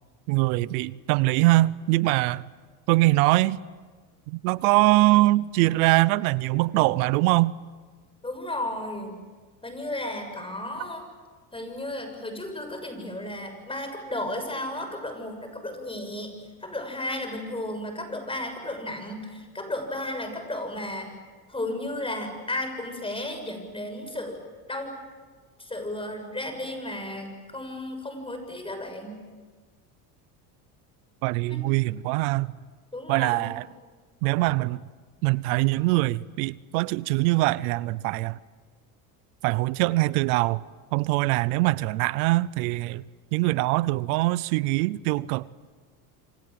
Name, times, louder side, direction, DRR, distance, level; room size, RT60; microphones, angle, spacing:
voice 1, 0.3-2.4 2.9-3.6 4.3-7.5 31.2-32.5 33.1-33.6 34.2-34.8 35.2-38.4 39.4-40.6 40.9-43.0 43.3-45.5, right 20 dB, 85° right, 0.8 m, -23 dB
voice 2, 8.2-9.2 9.6-11.0 11.5-16.3 16.6-21.1 21.5-24.4 24.7-24.9 25.6-29.2 31.5-31.6 32.9-33.5, left 1 dB, 10° left, 6.9 m, -34 dB
27.0 x 26.5 x 7.8 m
supercardioid pair, 105°, 44 cm